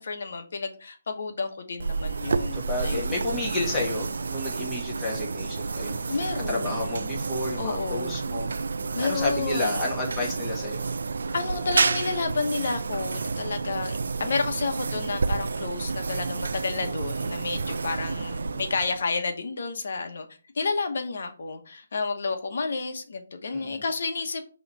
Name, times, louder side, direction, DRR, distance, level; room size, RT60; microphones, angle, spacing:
voice 1, 0.0-3.5 6.1-6.9 7.6-8.2 8.9-9.9 11.3-20.3 20.5-24.5, left 4 dB, 60° left, 6 dB, 1.1 m, -31 dB
sound 1, 1.8-19.2, right 4 dB, 75° right, 0.4 m, -30 dB
voice 2, 2.5-10.9 18.2-18.3 23.5-23.8, left 2 dB, 10° left, -5 dB, 1.7 m, -31 dB
5.6 x 3.1 x 5.4 m, 0.38 s
hypercardioid pair, 165°, 0 cm